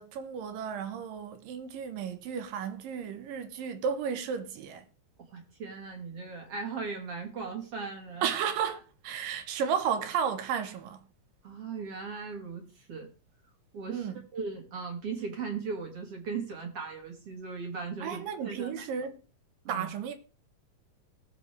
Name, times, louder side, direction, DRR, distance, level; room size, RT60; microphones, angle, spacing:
voice 1, 0.0-4.8 8.2-11.1 13.9-14.2 18.0-19.2 19.7-20.1, right 7 dB, 85° right, 2.9 m, -33 dB
voice 2, 5.2-8.3 11.4-13.1 13.7-14.1 14.3-18.8 19.6-19.9, right 5 dB, 50° right, 2.6 m, -38 dB
19.0 x 7.5 x 3.3 m
omnidirectional pair, 3.9 m